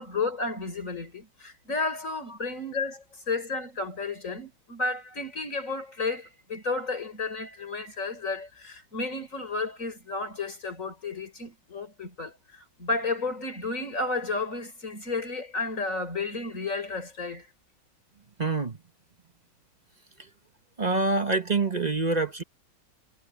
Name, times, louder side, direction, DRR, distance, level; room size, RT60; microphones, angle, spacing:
voice 1, 0.0-17.5, left 3 dB, 35° left, 5.0 m, -32 dB
voice 2, 18.4-18.8 20.8-22.4, right 3 dB, 30° right, 0.9 m, -26 dB
omnidirectional pair, 2.3 m